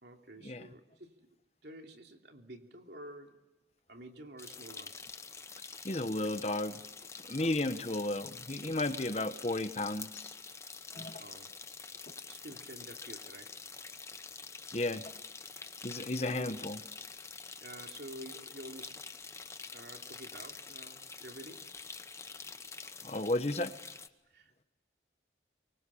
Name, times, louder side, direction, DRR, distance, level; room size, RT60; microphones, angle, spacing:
voice 1, 0.0-1.3 1.6-3.4 3.9-5.0 7.4-7.6 11.2-11.6 12.3-13.6 16.1-16.5 17.6-19.0 19.7-21.7 24.3-24.6, right 1 dB, 70° right, 3 dB, 3.0 m, -49 dB
sound 1, 4.4-24.1, left 4 dB, 15° left, 1.0 m, -47 dB
voice 2, 5.8-6.8 7.3-10.3 10.9-11.2 14.7-15.1 15.8-16.8 23.0-23.7, left 2 dB, 35° left, 10 dB, 1.2 m, -33 dB
25.5 x 23.5 x 8.6 m, 1.1 s
head